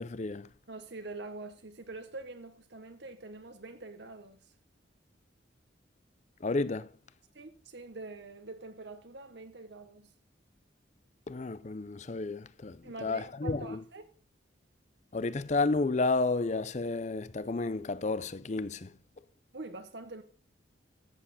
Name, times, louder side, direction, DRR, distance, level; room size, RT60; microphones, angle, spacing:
voice 1, 0.0-0.5 6.4-6.9 11.3-13.8 15.1-18.9, left 3 dB, 40° left, 0.5 m, -31 dB
voice 2, 0.7-4.5 7.3-10.1 12.8-14.0 19.5-20.2, right 3 dB, 60° right, 1.1 m, -45 dB
13.5 x 8.4 x 4.1 m
head